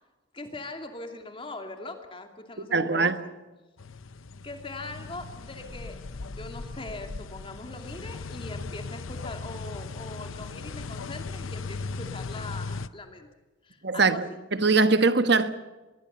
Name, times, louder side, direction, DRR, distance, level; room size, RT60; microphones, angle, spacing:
voice 1, 0.3-3.2 4.4-13.3 13.6-14.2, left 2 dB, 25° left, 2.5 m, -41 dB
voice 2, 2.6-3.1 13.8-14.3 14.6-15.5, right 4 dB, 55° right, 1.2 m, -21 dB
sound 1, 3.8-12.9, left 3 dB, 80° left, 0.8 m, -38 dB
25.0 x 21.0 x 6.9 m
head